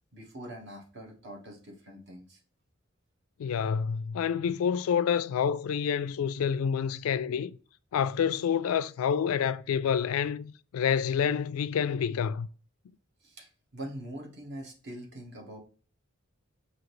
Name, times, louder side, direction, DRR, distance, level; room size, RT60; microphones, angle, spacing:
voice 1, 0.1-2.4 13.2-15.6, right 1 dB, 55° right, 1.2 m, -43 dB
voice 2, 3.4-7.6 7.9-12.5, left 7 dB, 85° left, 0.3 m, -28 dB
4.9 x 2.8 x 3.0 m
head